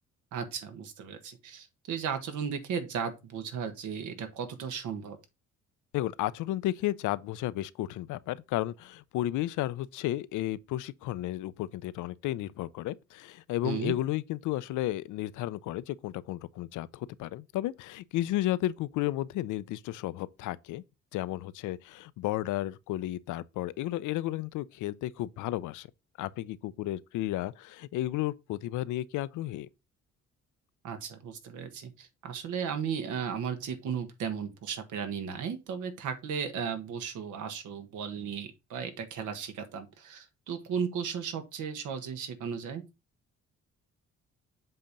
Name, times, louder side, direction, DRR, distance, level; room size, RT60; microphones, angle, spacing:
voice 1, 0.3-5.2 13.6-13.9 30.8-42.8, right 7 dB, 80° right, 1.3 m, -35 dB
voice 2, 5.9-20.8 21.1-25.9 26.2-29.7, left 15 dB, 85° left, 0.5 m, -33 dB
7.6 x 2.9 x 5.1 m
cardioid pair, 90°, 30 cm